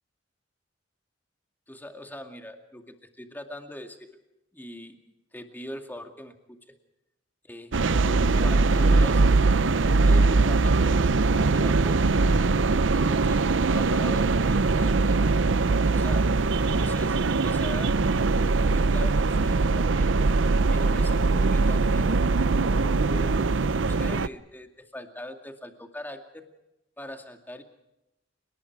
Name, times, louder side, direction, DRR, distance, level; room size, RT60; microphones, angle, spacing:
voice 1, 1.7-4.2 4.5-6.8 7.4-9.3 9.9-12.1 12.6-15.2 15.9-16.3 16.6-17.9 18.6-20.2 20.7-22.3 22.7-26.5 27.0-27.6, left 1 dB, 10° left, 5 dB, 2.3 m, -42 dB
sound 1, 7.7-24.3, right 3 dB, 90° right, 0.7 m, -22 dB
30.0 x 19.5 x 4.8 m, 0.93 s
head